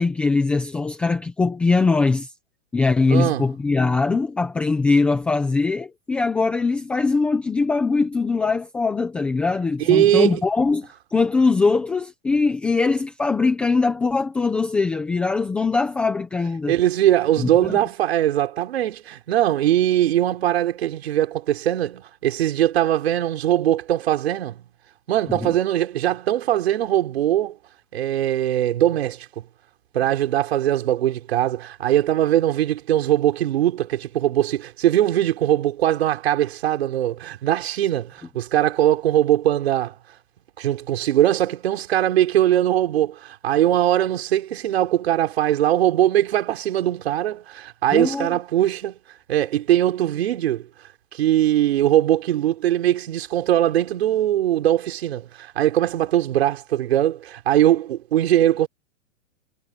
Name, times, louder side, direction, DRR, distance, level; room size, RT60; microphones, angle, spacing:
voice 1, 0.0-2.3 2.7-16.7 17.4-17.8 25.3-25.5 47.9-48.3, left 4 dB, 5° left, 0.7 m, -21 dB
voice 2, 3.1-3.4 9.8-10.4 16.7-24.6 25.1-27.6 27.9-29.4 29.9-39.9 40.6-48.9 49.3-50.7 51.1-58.7, right 12 dB, 50° right, 5.4 m, -21 dB
hypercardioid pair, 175°, 39 cm